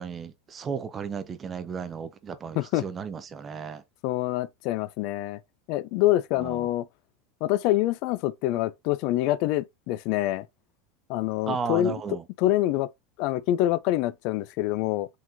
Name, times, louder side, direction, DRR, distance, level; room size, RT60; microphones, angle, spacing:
voice 1, 0.0-3.8 6.4-6.7 11.5-12.2, right 6 dB, 20° right, 0.5 m, -34 dB
voice 2, 4.0-5.4 5.7-6.9 7.4-10.5 11.1-12.0 12.4-12.9 13.2-15.1, left 14 dB, 50° left, 0.3 m, -26 dB
4.8 x 3.8 x 2.7 m
supercardioid pair, 165°, 0 cm